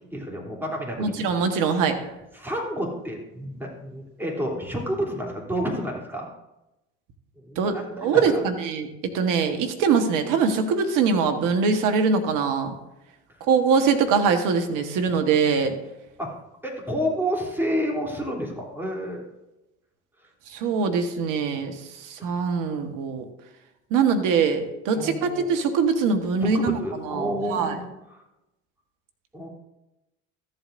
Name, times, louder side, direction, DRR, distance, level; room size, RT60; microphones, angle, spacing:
voice 1, 0.1-1.7 2.3-6.3 7.4-8.4 16.2-19.2 22.2-22.4 24.9-25.5 26.4-27.8 28.1-28.2 29.3-29.5, equal, 5° right, -2 dB, 3.1 m, -30 dB
voice 2, 1.0-2.0 7.6-8.9 9.1-12.7 13.5-15.7 20.5-23.2 23.9-26.8 27.0-27.8, right 5 dB, 65° right, 7 dB, 1.3 m, -23 dB
14.0 x 8.0 x 2.6 m, 0.93 s
hypercardioid pair, 65°, 34 cm